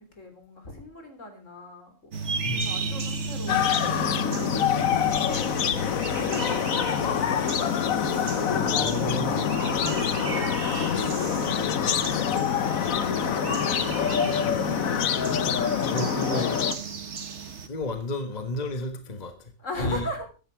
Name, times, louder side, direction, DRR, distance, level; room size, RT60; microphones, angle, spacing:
voice 1, 0.2-2.1 2.5-4.1 4.8-7.7 8.3-11.8 15.5-16.3 16.7-16.9 19.6-20.3, left 1 dB, 65° left, 5 dB, 3.9 m, -40 dB
sound 1, 2.1-17.7, right 4 dB, 60° right, 1.7 m, -35 dB
voice 2, 2.4-2.9 8.0-9.4 15.8-16.5 17.7-19.5 19.8-20.0, left 1 dB, 30° left, 7 dB, 1.4 m, -33 dB
sound 2, 3.5-16.7, left 8 dB, 85° left, 1.4 m, -25 dB
15.0 x 11.0 x 4.7 m, 0.35 s
omnidirectional pair, 1.4 m